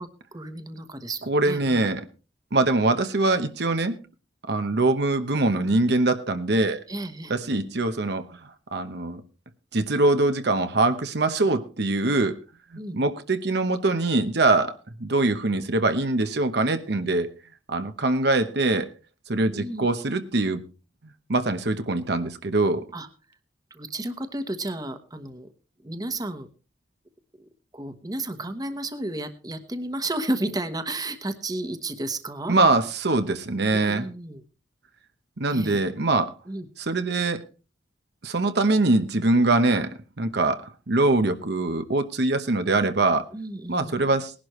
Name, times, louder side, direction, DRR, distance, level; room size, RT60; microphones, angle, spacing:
voice 1, 0.0-1.9 6.9-7.3 12.8-13.0 19.5-19.9 22.9-23.1 23.7-25.5 25.8-26.5 27.4-32.6 33.7-34.4 35.5-35.8 36.5-36.7 43.3-44.0, right 1 dB, 20° right, 9 dB, 1.2 m, -32 dB
voice 2, 1.3-2.0 2.5-4.0 4.5-6.8 7.3-8.3 8.7-9.2 9.7-12.4 12.9-17.3 17.7-18.9 19.3-20.6 21.3-22.8 32.5-34.1 35.4-36.3 36.8-37.4 38.2-39.9 40.2-43.3 43.7-44.3, right 2 dB, 65° right, 8 dB, 1.0 m, -23 dB
19.0 x 11.5 x 3.1 m, 0.33 s
head